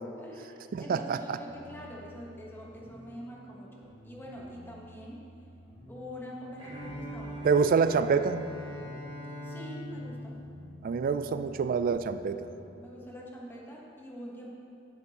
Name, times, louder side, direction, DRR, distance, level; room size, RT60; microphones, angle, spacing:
voice 1, 0.2-5.2 5.9-7.5 7.8-8.1 9.4-10.4 12.8-14.5, equal, 10° left, -3 dB, 1.1 m, -45 dB
voice 2, 0.7-1.4 7.4-8.4 10.8-12.5, right 5 dB, 45° right, 11 dB, 0.3 m, -26 dB
sound 1, 1.5-12.8, right 1 dB, 40° left, 1.6 m, -51 dB
Bowed string instrument, 6.6-11.5, left 1 dB, 25° right, 1.5 m, -42 dB
10.0 x 8.0 x 2.9 m, 2.7 s
head